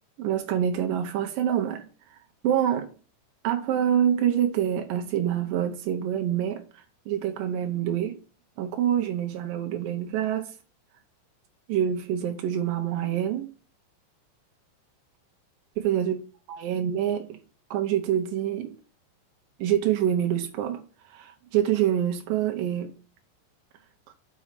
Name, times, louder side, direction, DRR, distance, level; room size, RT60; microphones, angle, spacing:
voice 1, 0.2-1.8 2.4-2.9 3.4-8.2 8.6-10.6 11.7-13.5 15.8-16.2 16.5-17.4 17.7-18.7 19.6-20.8 21.1-22.9, right 10 dB, 85° right, 2.0 m, -26 dB
6.2 x 6.0 x 5.8 m
omnidirectional pair, 5.0 m